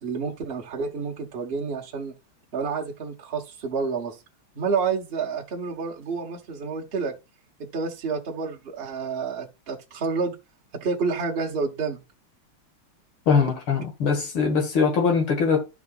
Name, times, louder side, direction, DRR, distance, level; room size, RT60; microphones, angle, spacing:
voice 1, 0.0-2.1 2.5-4.2 4.5-7.1 7.6-10.3 10.7-12.0, right 5 dB, 35° right, 1.1 m, -29 dB
voice 2, 13.3-15.6, left 5 dB, 85° left, 2.5 m, -22 dB
13.0 x 4.8 x 2.4 m
omnidirectional pair, 2.3 m